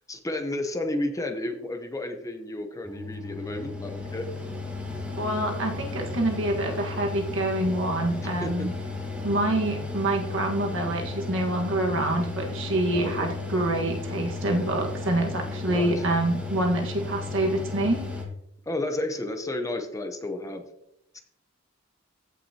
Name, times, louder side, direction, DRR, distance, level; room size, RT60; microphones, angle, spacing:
voice 1, 0.1-4.3 8.2-8.7 12.9-13.3 15.7-16.0 18.7-20.6 21.1-21.2, left 1 dB, 15° left, 5 dB, 0.8 m, -32 dB
Mechanical fan, 2.8-18.3, left 3 dB, 5° right, 1.7 m, -34 dB
voice 2, 5.2-8.7 9.2-18.1, right 1 dB, 60° right, 1 dB, 1.6 m, -26 dB
15.5 x 5.9 x 2.9 m, 0.77 s
head